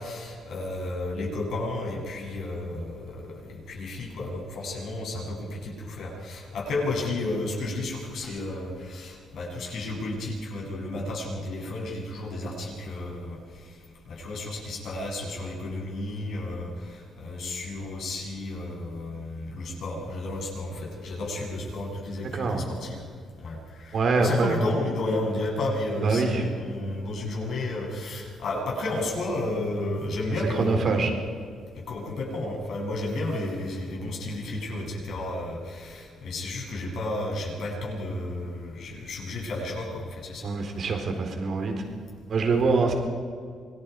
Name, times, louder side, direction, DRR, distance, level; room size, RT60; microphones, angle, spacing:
voice 1, 0.0-13.4 14.1-23.0 23.4-31.1 31.9-40.5, left 2 dB, 65° left, -2 dB, 8.0 m, -32 dB
voice 2, 22.3-22.7 23.9-24.7 26.0-26.4 30.6-31.1 40.4-41.7 42.3-42.9, right 4 dB, 55° right, 4 dB, 4.1 m, -24 dB
27.0 x 20.0 x 4.9 m, 2.1 s
cardioid pair, 90°, 0 cm